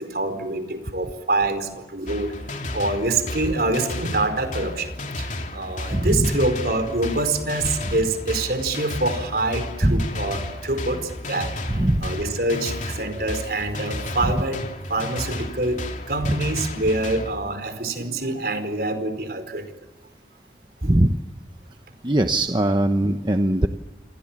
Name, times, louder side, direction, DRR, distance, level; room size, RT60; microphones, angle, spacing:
voice 1, 0.0-4.9 5.2-11.5 12.0-14.6 14.9-19.7 20.8-21.0, right 2 dB, 55° right, 9 dB, 4.7 m, -26 dB
sound 1, 2.1-17.3, left 1 dB, 45° left, 3.0 m, -33 dB
voice 2, 5.9-6.3 9.8-10.1 11.7-12.1 16.3-16.4 20.8-21.1 22.0-23.7, right 1 dB, 25° right, 6 dB, 1.0 m, -20 dB
28.0 x 27.0 x 7.4 m, 1.1 s
head